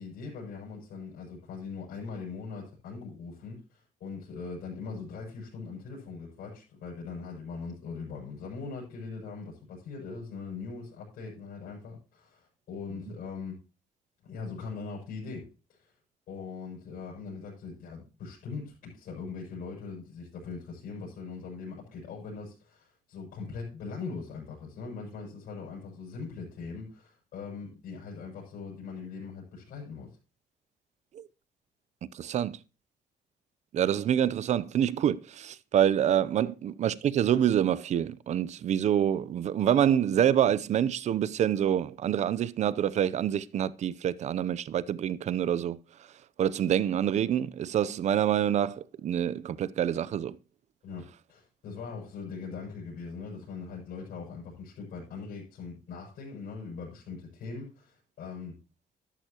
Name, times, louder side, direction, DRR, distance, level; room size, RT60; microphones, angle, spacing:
voice 1, 0.0-13.6 14.2-15.9 16.3-30.1 50.8-58.6, left 4 dB, 75° left, 6.7 m, -41 dB
voice 2, 32.1-32.6 33.7-45.8 46.4-50.4, right 10 dB, 50° right, 0.6 m, -26 dB
13.0 x 11.0 x 2.9 m
cardioid pair, 155°, 15 cm